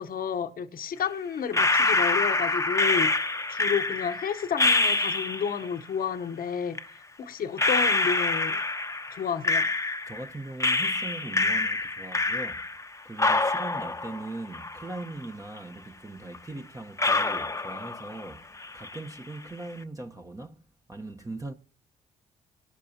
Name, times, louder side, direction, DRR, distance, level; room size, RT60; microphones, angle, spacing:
voice 1, 0.0-3.1 3.5-8.6 9.1-9.7, left 7 dB, 60° left, 1.1 m, -31 dB
sound 1, 1.5-5.7 6.7-6.8 7.6-10.3 10.6-12.9 13.2-15.2 15.6-15.7 16.3-16.4 17.0-18.3 18.6-19.1, left 3 dB, 15° left, 0.9 m, -26 dB
voice 2, 10.1-12.7 13.0-18.5 18.7-20.6 20.9-21.5, right 2 dB, 20° right, 1.1 m, -40 dB
19.0 x 11.5 x 2.9 m
supercardioid pair, 55°, 17 cm